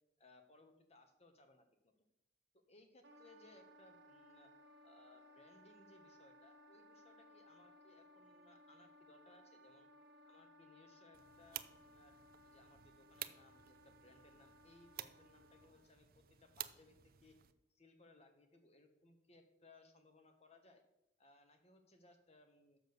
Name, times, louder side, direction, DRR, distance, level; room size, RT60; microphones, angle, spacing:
voice 1, 0.2-1.9 2.5-4.5 4.8-9.9 10.2-12.1 12.4-17.4 17.7-20.8 21.2-22.8, left 2 dB, 35° left, 6 dB, 1.2 m, -66 dB
Wind instrument woodwind instrument, 3.0-15.9, equal, 75° right, 1.1 m, -63 dB
sound 1, 11.1-17.5, right 13 dB, 55° right, 0.5 m, -53 dB
6.6 x 6.4 x 6.8 m, 0.85 s
head